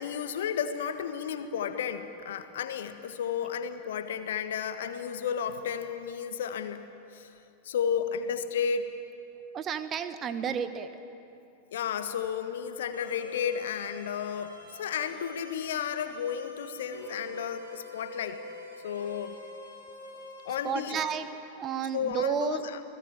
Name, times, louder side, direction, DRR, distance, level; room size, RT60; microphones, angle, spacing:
voice 1, 0.0-6.9 7.1-7.3 7.6-8.9 11.7-18.4 18.8-19.4 20.4-21.0 21.9-22.8, left 7 dB, 60° left, 9 dB, 1.5 m, -33 dB
voice 2, 9.5-10.9 20.6-21.3 21.6-22.6, right 7 dB, 30° right, 11 dB, 1.3 m, -31 dB
sound 1, 12.9-20.9, left 1 dB, 80° right, 7.4 m, -46 dB
29.5 x 19.5 x 9.0 m, 2.7 s
figure-of-eight pair, 90°, 0 cm